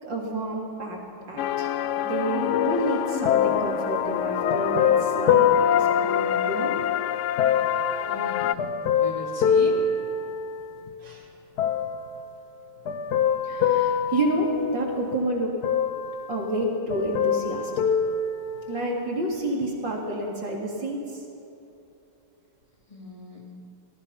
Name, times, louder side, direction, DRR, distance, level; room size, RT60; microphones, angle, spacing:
voice 1, 0.0-1.0 1.3-1.7 2.0-6.8 11.0-11.3 13.4-15.5 16.3-17.8 18.7-21.2, right 1 dB, 80° right, -1 dB, 4.0 m, -29 dB
sound 1, 1.4-8.5, left 10 dB, 80° left, 0.6 m, -27 dB
sound 2, 3.2-6.8 7.4-10.9 11.6-12.2 12.9-15.2 15.6-16.6 16.9-19.0 19.6-19.7, left 7 dB, 60° left, 1.4 m, -25 dB
voice 2, 8.1-8.7 8.9-9.8 22.9-23.5, left 1 dB, 15° left, -2 dB, 3.1 m, -38 dB
26.0 x 19.0 x 5.9 m, 2.9 s
omnidirectional pair, 2.0 m